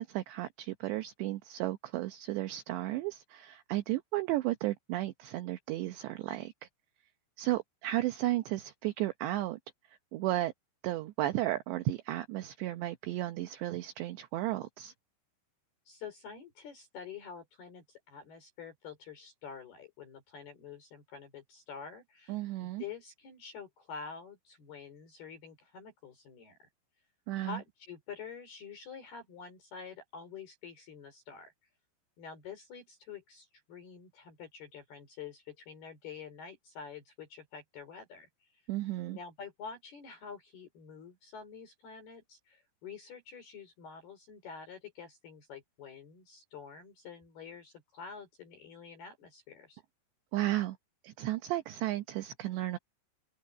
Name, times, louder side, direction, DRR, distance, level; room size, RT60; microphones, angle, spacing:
voice 1, 0.0-6.5 7.4-9.6 10.1-10.5 10.8-14.9 22.3-22.8 27.3-27.6 38.7-39.2 50.3-50.8 51.0-52.8, right 15 dB, 75° right, 2.9 m, -34 dB
voice 2, 15.9-22.4 22.8-26.6 27.4-31.5 32.2-38.7 39.1-49.8, left 6 dB, 55° left, 6.4 m, -47 dB
open air
omnidirectional pair, 5.6 m